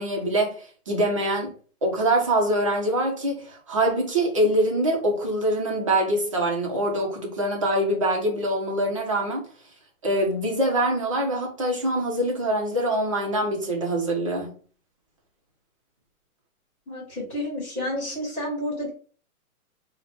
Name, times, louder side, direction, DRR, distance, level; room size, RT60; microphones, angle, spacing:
voice 1, 0.0-1.5 1.8-9.4 10.0-14.5, right 1 dB, 25° right, 0.6 m, -24 dB
voice 2, 16.9-18.9, left 1 dB, 5° left, 1.3 m, -30 dB
2.9 x 2.2 x 4.0 m
hypercardioid pair, 165°, 43 cm